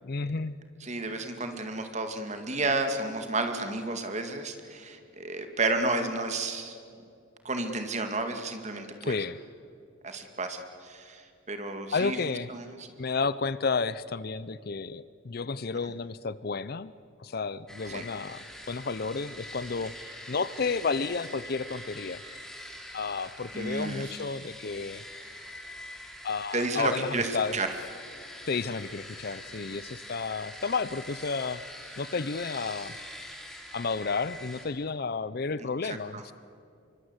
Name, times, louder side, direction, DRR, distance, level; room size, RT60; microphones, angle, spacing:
voice 1, 0.0-0.5 9.0-9.4 11.9-12.5 13.0-16.9 17.2-22.2 22.9-25.0 26.2-27.6 28.5-31.6 32.0-32.9 33.7-36.3, left 4 dB, 45° left, 17 dB, 0.5 m, -32 dB
voice 2, 0.8-6.8 7.4-9.2 10.0-11.2 11.5-12.2 12.5-12.6 17.9-18.0 23.5-24.0 26.5-27.7 36.1-36.2, right 2 dB, 35° right, 6 dB, 2.1 m, -31 dB
sound 1, 17.7-34.7, left 1 dB, 5° left, 2.9 m, -44 dB
25.5 x 24.0 x 8.1 m, 2.4 s
head